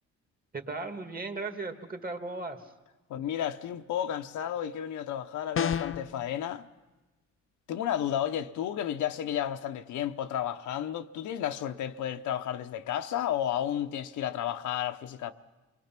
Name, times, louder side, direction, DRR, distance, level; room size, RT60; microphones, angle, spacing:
voice 1, 0.5-2.7, right 3 dB, 30° right, 2.1 m, -36 dB
voice 2, 3.1-6.7 7.7-15.3, left 10 dB, 75° left, 0.9 m, -32 dB
sound 1, 5.6-6.1, left 8 dB, 45° left, 0.9 m, -28 dB
28.0 x 21.5 x 5.9 m
cardioid pair, 90°, 30 cm